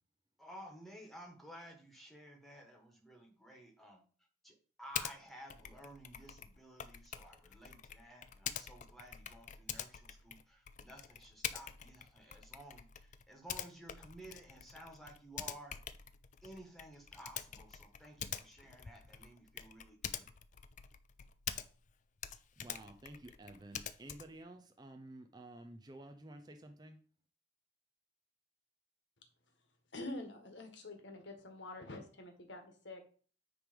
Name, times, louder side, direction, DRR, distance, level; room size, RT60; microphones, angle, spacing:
voice 1, 0.4-4.0 4.4-15.8 16.4-20.2, right 1 dB, ahead, 1 dB, 1.6 m, -54 dB
Typing, 4.9-5.2 5.5-21.9 22.2-24.4, left 9 dB, 40° left, 0.4 m, -46 dB
voice 2, 22.6-27.0, right 1 dB, 20° right, 5 dB, 0.5 m, -52 dB
voice 3, 29.9-33.0, left 2 dB, 70° left, 5 dB, 1.5 m, -46 dB
9.4 x 3.3 x 5.2 m, 0.42 s
head